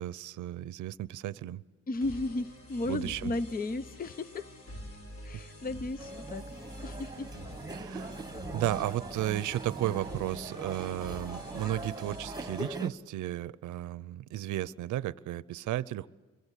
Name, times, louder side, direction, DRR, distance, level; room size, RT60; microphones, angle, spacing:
voice 1, 0.0-1.6 2.9-3.3 7.7-8.2 8.5-16.1, right 14 dB, 75° right, 19 dB, 0.7 m, -34 dB
voice 2, 1.9-4.5 5.2-6.4 6.8-7.3, left 2 dB, 30° left, 14 dB, 0.8 m, -34 dB
sound 1, 2.0-12.7, equal, 50° left, 5.9 m, -47 dB
sound 2, 6.0-12.9, right 2 dB, 15° right, 1.4 m, -41 dB
26.5 x 23.5 x 8.3 m, 1.3 s
cardioid pair, 90°, 30 cm